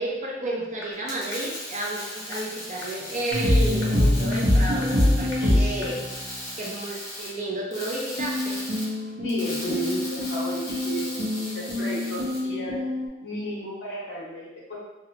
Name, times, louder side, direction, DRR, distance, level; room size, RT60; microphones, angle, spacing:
voice 1, 0.0-6.0 6.6-8.6, right 2 dB, 40° right, -2 dB, 0.6 m, -32 dB
sound 1, 0.8-0.9 1.3-1.4 1.8-1.9 2.3-2.4 2.8-2.9 3.3-3.4 3.8-3.9 4.3-4.4 4.8-4.9 5.3-5.4 5.8-5.9, left 2 dB, 90° left, 0.7 m, -38 dB
sound 2, 0.9-12.4, left 1 dB, 15° left, 0.9 m, -38 dB
sound 3, 3.3-6.5 8.2-13.1, left 1 dB, 80° right, 1.2 m, -25 dB
voice 2, 5.4-6.0 9.2-12.8 13.2-14.7, equal, 70° left, -6 dB, 1.1 m, -33 dB
3.3 x 2.4 x 2.8 m, 1.1 s
head